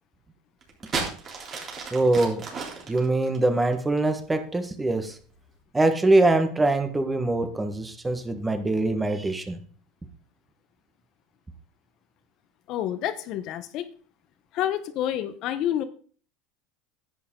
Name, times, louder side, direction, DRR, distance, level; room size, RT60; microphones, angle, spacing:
sound 1, 0.6-4.3 5.1-5.5, right 4 dB, 35° right, 3.5 m, -34 dB
voice 1, 1.9-2.4 2.9-5.2 5.7-9.6, right 2 dB, 15° right, 8 dB, 1.4 m, -23 dB
voice 2, 12.7-13.9 14.5-15.8, left 11 dB, 55° left, 11 dB, 1.0 m, -28 dB
11.0 x 8.4 x 3.8 m, 0.43 s
supercardioid pair, 120°, 0 cm